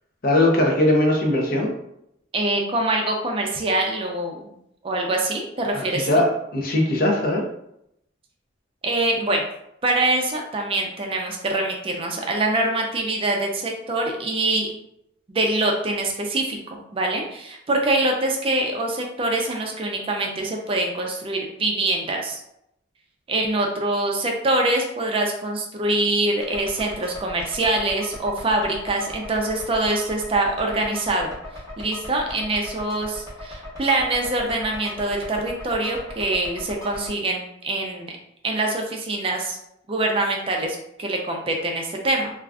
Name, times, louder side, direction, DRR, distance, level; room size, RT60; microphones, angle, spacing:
voice 1, 0.2-1.7 5.9-6.2 6.5-7.4, left 1 dB, 50° left, 0 dB, 0.6 m, -19 dB
voice 2, 2.3-4.4 4.8-6.2 8.8-9.4 9.8-14.7 15.3-22.4 23.3-31.3 31.8-38.1 38.4-39.6 39.9-42.3, right 2 dB, 30° right, 1 dB, 0.4 m, -24 dB
sound 1, 26.4-37.1, left 1 dB, 15° left, 1.0 m, -39 dB
2.4 x 2.3 x 3.4 m, 0.78 s
head